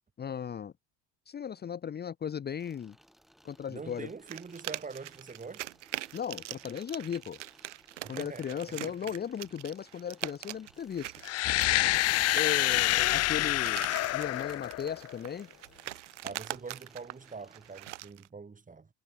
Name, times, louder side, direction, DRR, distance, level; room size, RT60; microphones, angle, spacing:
voice 1, 0.2-0.7 1.3-3.0 3.4-4.1 6.1-7.4 8.1-11.2 12.3-13.9 14.1-15.5, left 8 dB, 30° left, 1.0 m, -36 dB
sound 1, 2.6-17.9, equal, ahead, 6.8 m, -63 dB
voice 2, 3.7-5.7 8.0-8.9 12.3-13.3 16.2-18.9, right 4 dB, 20° right, 5.0 m, -45 dB
sound 2, 4.3-12.6 13.2-18.3, right 15 dB, 85° right, 0.6 m, -43 dB
sound 3, 11.2-15.2, left 17 dB, 45° left, 0.6 m, -27 dB
hypercardioid pair, 70°, 35 cm